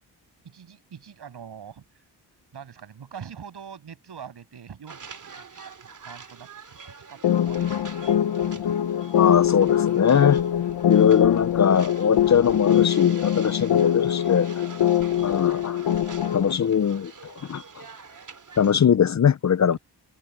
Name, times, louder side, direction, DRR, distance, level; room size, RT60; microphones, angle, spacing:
voice 1, 0.4-1.8 2.5-5.4 5.8-7.8 8.1-8.8 14.7-14.9 16.2-16.3 19.7-19.8, right 7 dB, 70° right, 7.8 m, -44 dB
sound 1, 4.9-18.8, right 5 dB, 45° right, 2.9 m, -46 dB
sound 2, 7.2-16.5, left 10 dB, 65° left, 0.9 m, -23 dB
voice 2, 9.1-10.4 10.9-14.5 15.2-15.8 16.3-17.6 18.6-19.8, left 7 dB, 40° left, 0.7 m, -21 dB
cardioid pair, 65°, 42 cm